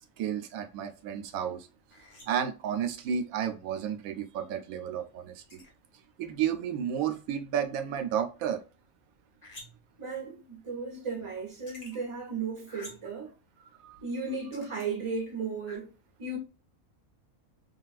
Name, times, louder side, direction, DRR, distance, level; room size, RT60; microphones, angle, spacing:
voice 1, 0.2-1.7 2.3-5.6 6.2-8.6 13.8-14.0, right 8 dB, 90° right, 1.0 m, -32 dB
sound 1, 1.9-2.5 5.5-5.7 9.4-9.9 11.5-12.0 12.7-13.2 14.5-14.9 15.7-15.8, left 1 dB, 30° left, 1.0 m, -49 dB
voice 2, 10.0-13.3 14.0-15.9 16.2-16.4, right 4 dB, 25° right, 1.0 m, -35 dB
3.4 x 2.4 x 2.3 m
omnidirectional pair, 1.4 m